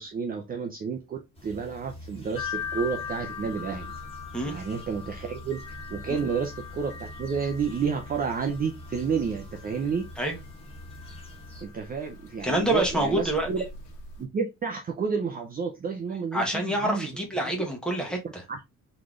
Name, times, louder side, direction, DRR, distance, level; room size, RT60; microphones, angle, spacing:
voice 1, 0.0-3.9 4.5-5.6 5.9-10.1 11.6-13.6 14.2-17.1 17.4-17.5 18.5-18.6, right 6 dB, 30° right, 0.6 m, -30 dB
sound 1, 1.3-11.6, left 1 dB, 20° left, 1.6 m, -45 dB
sound 2, 2.3-14.2, left 6 dB, 70° left, 1.5 m, -41 dB
voice 2, 12.4-13.5 16.3-18.4, right 1 dB, 5° left, 1.3 m, -27 dB
4.0 x 3.3 x 3.6 m
cardioid pair, 160°, 32 cm